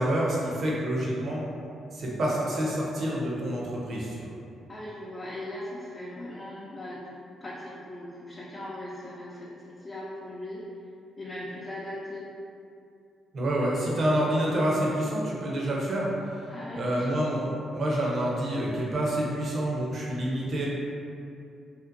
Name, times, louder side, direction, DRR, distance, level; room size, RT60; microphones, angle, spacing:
voice 1, 0.0-1.5 1.9-4.2 13.3-16.1 16.7-20.7, right 1 dB, 60° right, -4 dB, 0.6 m, -27 dB
voice 2, 4.7-7.1 7.4-10.7 11.2-12.3 16.5-17.3, left 1 dB, 40° left, -7 dB, 0.5 m, -39 dB
2.8 x 2.1 x 2.5 m, 2.5 s
supercardioid pair, 50°, 0 cm